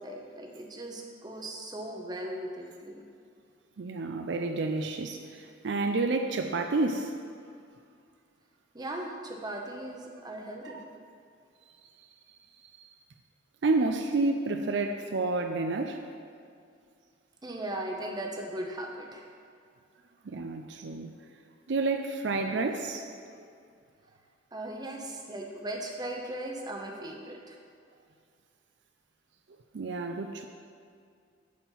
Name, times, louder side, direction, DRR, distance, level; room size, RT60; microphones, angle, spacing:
voice 1, 0.0-3.0 8.7-10.8 17.4-19.3 24.5-27.6, right 1 dB, 20° right, 1 dB, 0.9 m, -38 dB
voice 2, 3.8-7.2 10.6-10.8 12.6-12.7 13.6-16.0 20.2-21.1 21.7-23.1 29.7-30.4, right 3 dB, 65° right, 5 dB, 0.5 m, -30 dB
9.2 x 4.3 x 7.3 m, 2.3 s
head